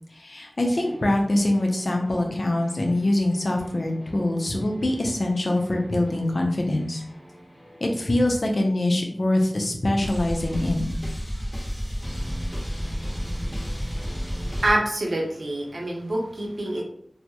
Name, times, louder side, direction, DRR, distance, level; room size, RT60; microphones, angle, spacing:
voice 1, 0.1-7.0 7.8-10.9, left 1 dB, 70° left, 2 dB, 0.5 m, -24 dB
sound 1, 0.6-9.1 10.0-14.7, equal, 15° left, 0.9 m, -34 dB
voice 2, 14.6-16.8, right 1 dB, 80° right, -1 dB, 0.5 m, -26 dB
2.2 x 2.0 x 2.8 m, 0.66 s
wide cardioid pair, 60°, 0 cm